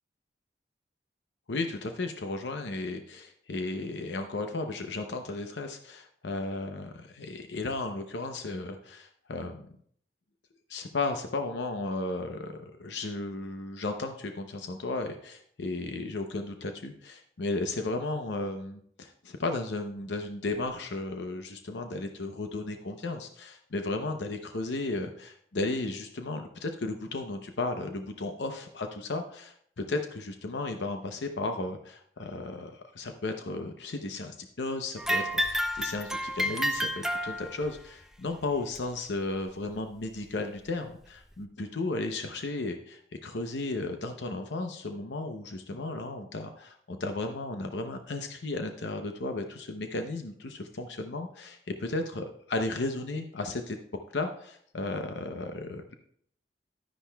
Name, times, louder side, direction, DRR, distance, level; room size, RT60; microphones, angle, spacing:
voice 1, 1.5-9.8 10.7-29.5 29.8-53.8 54.1-56.0, left 2 dB, 90° left, 5 dB, 0.7 m, -34 dB
sound 1, 35.0-37.8 38.8-38.9 39.7-39.8 40.7-40.8, equal, 5° right, 0.5 m, -30 dB
11.5 x 10.0 x 2.3 m, 0.63 s
head